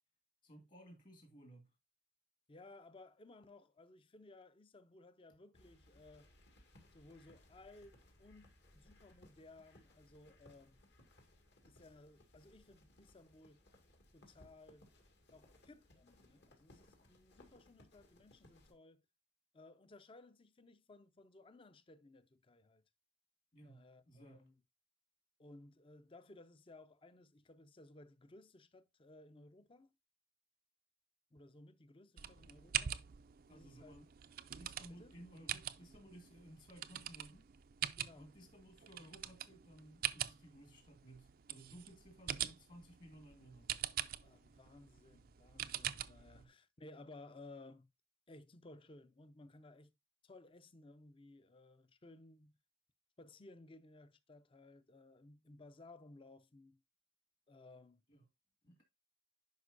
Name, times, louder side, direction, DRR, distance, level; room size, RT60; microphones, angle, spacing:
voice 1, 0.4-1.7 23.5-24.4 33.5-34.1 34.6-37.5 38.1-43.8 46.3-46.5 58.1-58.3 58.6-58.8, right 1 dB, 45° left, 2.0 m, -58 dB
voice 2, 2.5-6.3 6.9-10.8 11.6-13.6 14.1-14.9 15.3-19.0 19.5-22.8 23.6-24.5 25.4-29.9 31.3-33.0 33.5-33.9 34.9-35.2 38.0-38.3 44.2-47.9 48.3-49.9 50.2-52.6 53.2-56.8 57.5-58.0, left 2 dB, 30° left, 0.6 m, -59 dB
sound 1, 5.5-18.7, left 1 dB, 65° left, 2.1 m, -65 dB
sound 2, 32.2-46.4, right 11 dB, 50° right, 0.4 m, -44 dB
10.5 x 5.1 x 2.6 m
head